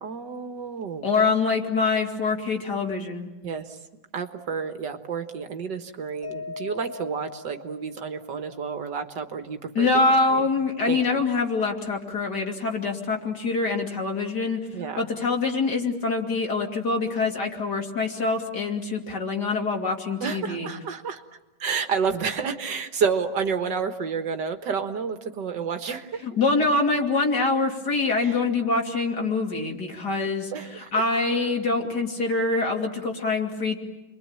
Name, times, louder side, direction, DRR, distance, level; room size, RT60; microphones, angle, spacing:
voice 1, 0.0-1.1 3.4-3.8 4.1-9.9 10.3-10.5 10.9-11.2 14.7-15.1 20.2-21.2 21.6-26.2 28.2-28.4 30.5-31.0, right 6 dB, 80° right, 7 dB, 2.2 m, -30 dB
voice 2, 1.0-3.3 9.7-14.6 15.0-20.7 26.2-33.8, left 3 dB, 70° left, 2 dB, 3.4 m, -25 dB
Mallet percussion, 6.2-8.5, left 5 dB, 15° right, 2.6 m, -40 dB
29.5 x 23.0 x 8.9 m, 1.0 s
omnidirectional pair, 1.9 m